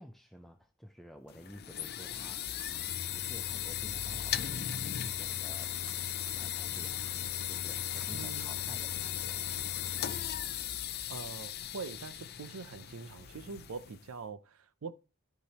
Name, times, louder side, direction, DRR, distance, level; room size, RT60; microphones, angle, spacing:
voice 1, 0.0-5.8 6.4-7.0 7.4-9.4, equal, ahead, 0.4 m, -51 dB
sound 1, 1.3-14.1, left 10 dB, 50° left, 0.5 m, -37 dB
sound 2, 1.3-1.4 1.7-1.8 2.1-3.3 3.9-9.2, right 4 dB, 50° right, 2.6 m, -60 dB
sound 3, 5.2-12.1 12.6-12.9, right 1 dB, 20° right, 2.4 m, -61 dB
voice 2, 8.1-8.6 11.1-14.9, right 5 dB, 75° right, 0.6 m, -44 dB
13.0 x 4.9 x 2.9 m
head